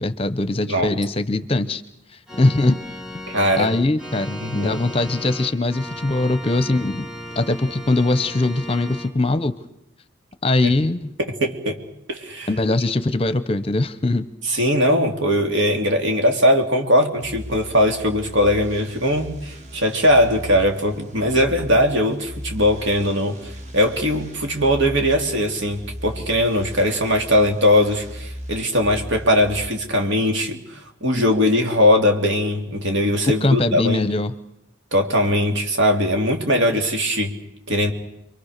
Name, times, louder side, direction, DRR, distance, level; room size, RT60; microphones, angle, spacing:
voice 1, 0.0-1.8 2.4-2.8 3.6-7.1 7.4-9.6 10.4-11.1 12.5-14.3 33.3-34.3, left 2 dB, 30° left, 13 dB, 0.8 m, -21 dB
Organ, 2.3-9.1, left 1 dB, 5° right, 2.0 m, -36 dB
voice 2, 3.3-3.7 4.4-4.8 10.6-10.7 11.2-11.8 12.1-12.5 14.4-34.1 34.9-37.3 37.7-37.9, equal, 65° right, 4 dB, 3.0 m, -20 dB
sound 1, 17.2-29.7, equal, 35° right, 2.2 m, -37 dB
27.5 x 23.5 x 6.7 m, 0.81 s
head